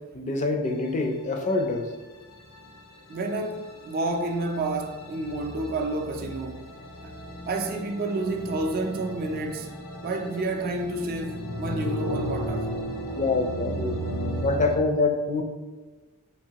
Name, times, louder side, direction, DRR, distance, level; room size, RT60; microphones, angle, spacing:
voice 1, 0.1-1.9 13.2-14.0 14.4-15.4, left 3 dB, 35° left, 0.4 m, -25 dB
sound 1, 0.7-14.8, equal, 80° left, 0.6 m, -35 dB
voice 2, 3.1-6.7 7.0-7.1 7.5-9.7 10.0-12.7, right 2 dB, 45° right, 0.4 m, -30 dB
4.5 x 2.7 x 2.8 m
head